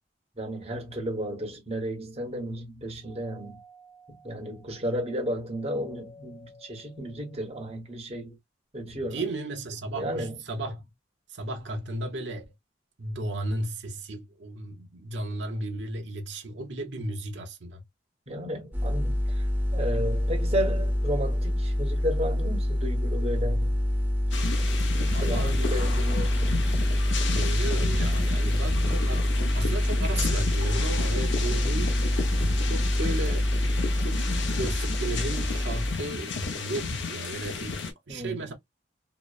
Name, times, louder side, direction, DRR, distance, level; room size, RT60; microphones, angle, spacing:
voice 1, 0.4-3.6 4.1-8.4 8.7-9.2 9.9-10.4 18.3-19.4 19.7-23.8 25.0-26.7 31.6-31.7 38.1-38.5, equal, 35° right, 1.0 m, -33 dB
Doorbell, 3.0-7.9, equal, 20° left, 0.8 m, -53 dB
voice 2, 8.9-10.8 11.3-12.4 13.0-17.8 25.0-25.5 27.1-31.9 32.6-33.5 34.0-38.5, right 2 dB, 75° right, 0.8 m, -35 dB
sound 1, 18.7-35.9, left 1 dB, 10° right, 0.6 m, -26 dB
sound 2, 24.3-37.9, left 4 dB, 75° left, 0.6 m, -33 dB
2.9 x 2.0 x 2.2 m
head